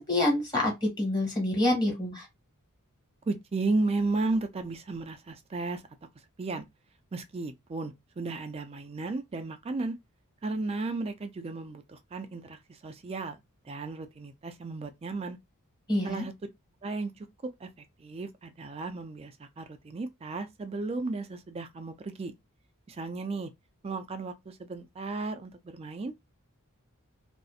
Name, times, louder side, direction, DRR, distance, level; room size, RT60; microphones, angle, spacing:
voice 1, 0.0-2.2 15.9-16.2, left 1 dB, 20° left, 1.3 m, -27 dB
voice 2, 3.3-5.8 6.4-6.6 7.1-10.0 10.4-13.4 13.7-15.4 16.0-16.3 16.8-17.1 17.4-17.7 18.0-22.3 22.9-23.5 23.8-26.1, right 3 dB, 25° right, 0.3 m, -34 dB
2.6 x 2.0 x 2.4 m
head